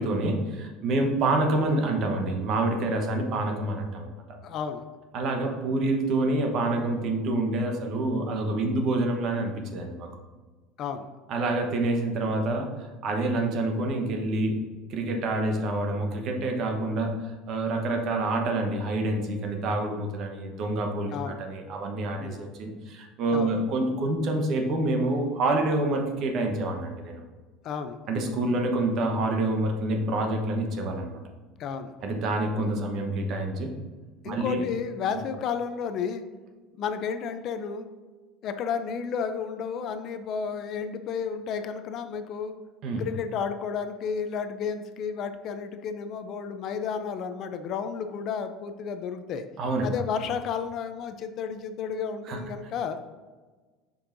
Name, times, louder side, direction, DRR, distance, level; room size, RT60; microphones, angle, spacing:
voice 1, 0.0-4.1 5.1-10.1 11.3-27.2 28.1-31.2 32.0-33.7 34.3-34.6 42.8-43.0 49.6-49.9 52.3-52.4, right 2 dB, 45° right, 3 dB, 1.0 m, -27 dB
voice 2, 4.4-4.8 10.8-11.1 21.1-21.4 22.2-22.5 23.3-23.6 27.6-28.0 31.6-31.9 34.2-36.2 36.7-37.9 38.4-42.5 43.0-49.5 49.8-53.0, left 6 dB, 40° left, 9 dB, 0.4 m, -32 dB
7.1 x 5.3 x 2.6 m, 1.3 s
cardioid pair, 155°, 0 cm